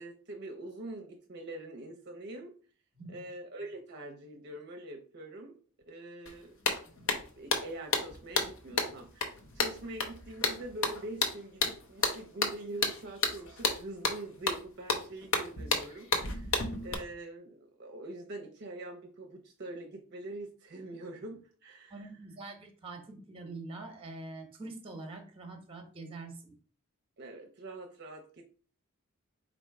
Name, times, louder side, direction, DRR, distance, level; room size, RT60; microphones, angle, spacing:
voice 1, 0.0-2.5 3.1-5.5 5.9-6.5 7.1-22.1 27.2-28.4, right 2 dB, 50° right, 3 dB, 0.6 m, -44 dB
sound 1, 6.3-6.4 6.6-16.9, left 3 dB, 65° left, 0.8 m, -31 dB
voice 2, 21.9-26.5, right 2 dB, 25° right, 4 dB, 0.9 m, -44 dB
4.3 x 2.6 x 4.7 m, 0.40 s
head